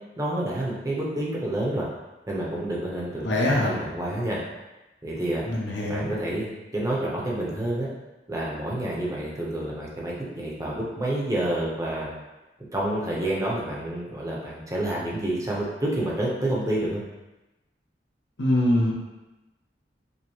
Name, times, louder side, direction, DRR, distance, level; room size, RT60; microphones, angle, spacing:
voice 1, 0.2-1.9 2.3-4.4 5.0-5.4 5.9-7.9 8.3-12.1 12.7-17.0, right 1 dB, 20° right, -4 dB, 0.7 m, -28 dB
voice 2, 3.2-3.7 5.4-6.1 18.4-18.9, left 1 dB, 90° left, -3 dB, 0.8 m, -23 dB
5.2 x 2.1 x 3.0 m, 1.0 s
head